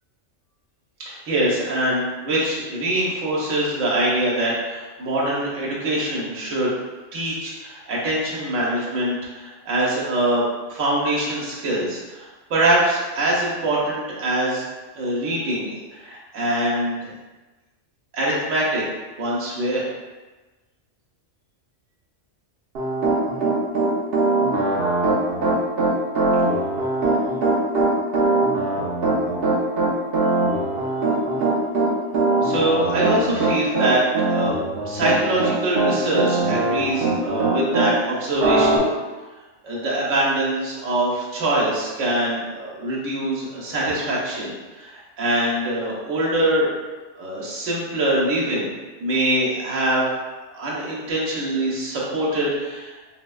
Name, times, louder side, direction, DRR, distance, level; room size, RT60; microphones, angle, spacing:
voice 1, 1.1-6.7 7.1-10.4 10.7-14.6 14.9-17.1 18.1-18.8 19.2-19.9 32.4-34.0 34.3-38.9 39.6-46.7 47.2-48.7 49.0-50.1 50.5-52.9, right 1 dB, 80° right, -5 dB, 1.2 m, -23 dB
Piano, 22.7-37.9 38.4-38.8, right 2 dB, 60° right, 0.8 m, -21 dB
4.1 x 2.1 x 2.2 m, 1.2 s
omnidirectional pair, 1.3 m